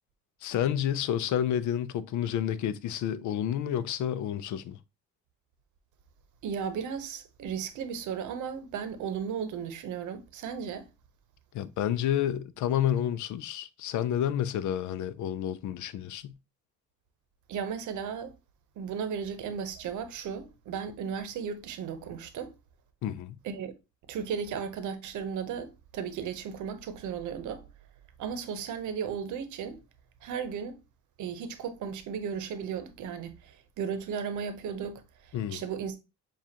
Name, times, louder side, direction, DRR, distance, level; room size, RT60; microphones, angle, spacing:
voice 1, 0.4-4.8 11.5-16.3 23.0-23.4 35.3-35.6, left 10 dB, 75° left, 0.5 m, -30 dB
voice 2, 6.4-10.9 17.5-18.3 18.8-22.5 23.4-23.7 24.1-27.6 28.2-29.8 30.2-30.8 31.2-36.0, right 7 dB, 80° right, 0.8 m, -35 dB
7.2 x 2.4 x 2.8 m
cardioid pair, 90°, 30 cm